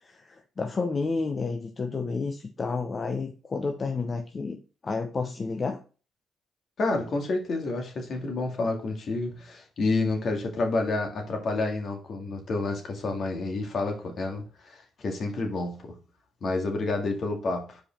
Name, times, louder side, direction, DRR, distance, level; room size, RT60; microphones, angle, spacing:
voice 1, 0.0-5.8, left 4 dB, 40° left, 0.9 m, -31 dB
voice 2, 6.8-16.0 16.4-17.8, left 3 dB, 60° left, 2.0 m, -29 dB
5.1 x 4.8 x 4.4 m
cardioid pair, 75°, 0 cm